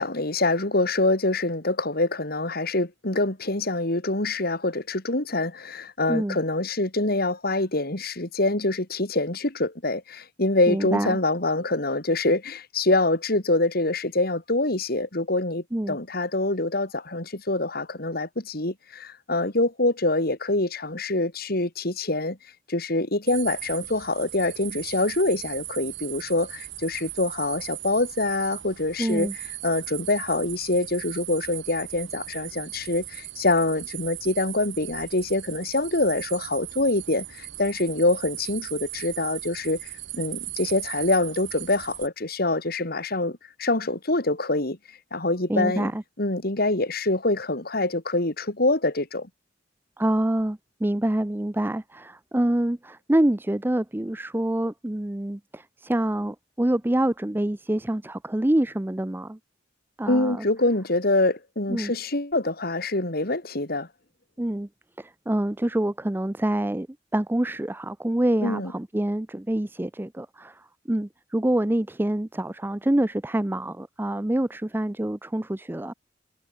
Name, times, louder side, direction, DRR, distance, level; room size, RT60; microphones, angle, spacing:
voice 1, 0.0-22.4 22.7-29.3 29.6-44.8 45.1-45.9 46.2-49.3 60.1-63.9 68.4-68.7, left 2 dB, 55° left, 3.4 m, -25 dB
voice 2, 10.7-11.2 15.7-16.0 29.0-29.3 45.5-46.0 50.0-59.4 60.0-60.4 61.7-61.9 64.4-64.7 65.0-66.9 67.1-70.6 70.9-75.9, right 1 dB, 10° right, 0.5 m, -26 dB
sound 1, 23.3-42.1, right 16 dB, 75° right, 6.5 m, -38 dB
head